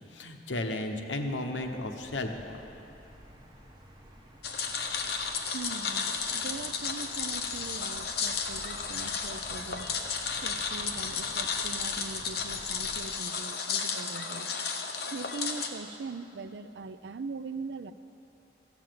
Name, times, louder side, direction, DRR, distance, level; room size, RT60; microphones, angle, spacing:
voice 1, 0.0-2.6, left 1 dB, 85° left, 5 dB, 1.0 m, -34 dB
sound 1, 1.6-13.1, equal, 25° right, 1.0 m, -52 dB
sound 2, 4.4-15.7, left 5 dB, 60° left, 1.0 m, -33 dB
voice 2, 5.5-9.9 10.4-14.5 15.1-17.9, right 4 dB, 70° right, 12 dB, 0.5 m, -41 dB
14.5 x 7.2 x 7.6 m, 2.9 s
head